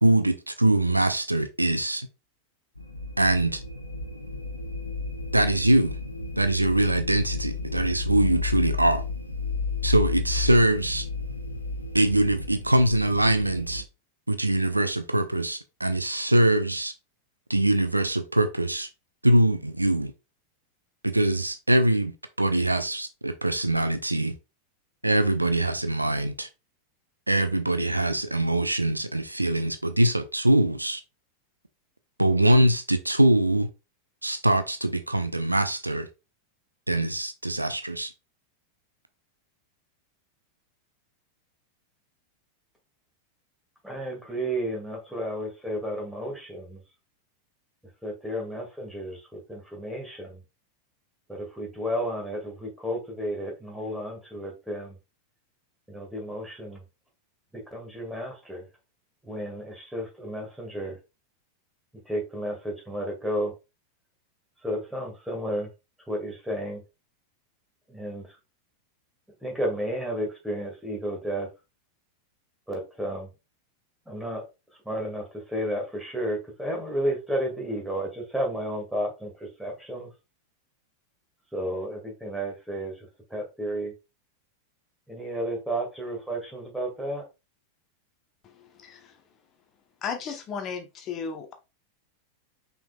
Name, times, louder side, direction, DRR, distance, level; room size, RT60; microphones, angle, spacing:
voice 1, 0.0-2.1 3.2-3.6 5.3-5.9 6.4-9.0 9.8-11.1 11.9-13.8 14.3-16.9 17.5-18.9 19.2-20.1 21.0-22.1 22.4-24.3 25.0-26.5 27.3-31.0 32.2-33.7 34.2-36.1 36.9-38.1, right 1 dB, 85° right, 0.5 m, -23 dB
sound 1, 2.8-13.8, left 4 dB, 90° left, 0.7 m, -32 dB
voice 2, 43.8-46.8 48.0-50.4 51.3-55.0 55.9-56.8 57.7-58.6 59.2-61.0 62.1-63.5 64.6-65.7 66.1-66.8 67.9-68.4 69.4-71.5 72.7-73.3 74.1-74.4 74.9-80.1 81.5-82.9 83.3-83.9 85.1-87.3, equal, 5° right, 1.9 m, -32 dB
voice 3, 88.4-89.2 90.0-91.5, left 6 dB, 30° left, 0.9 m, -35 dB
5.7 x 3.9 x 2.2 m
figure-of-eight pair, 90°, 0 cm